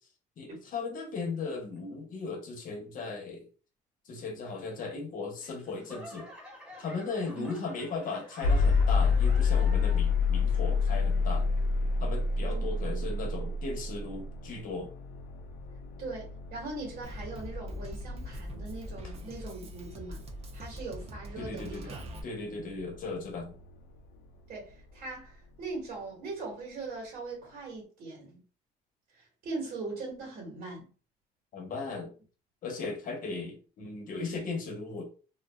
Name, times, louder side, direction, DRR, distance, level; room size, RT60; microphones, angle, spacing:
voice 1, 0.4-3.5 4.1-6.3 6.8-11.5 12.0-14.9 21.4-21.9 22.2-23.6 31.5-32.1 32.6-35.1, left 4 dB, 55° left, 0.9 m, -37 dB
Laughter / Clapping / Crowd, 5.4-10.2 10.5-11.0 11.6-11.7, left 1 dB, 5° right, 0.8 m, -49 dB
sound 1, 8.4-24.4, left 4 dB, 75° left, 0.4 m, -30 dB
voice 2, 12.5-13.0 16.0-20.2 20.5-22.0 24.5-28.4 29.1-30.9, right 3 dB, 60° right, 1.4 m, -40 dB
Drum kit, 17.0-22.2, equal, 35° right, 0.5 m, -43 dB
2.5 x 2.2 x 2.2 m
cardioid pair, 110°, 17 cm